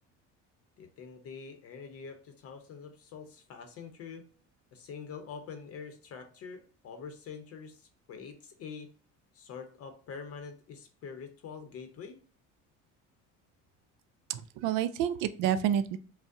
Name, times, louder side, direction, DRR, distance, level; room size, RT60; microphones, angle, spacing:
voice 1, 0.8-4.3 4.7-8.9 9.3-12.2, left 6 dB, 50° left, 7 dB, 0.6 m, -45 dB
voice 2, 14.3-16.0, right 10 dB, 85° right, 13 dB, 0.5 m, -29 dB
5.2 x 2.0 x 3.5 m, 0.41 s
cardioid pair, 130°, 31 cm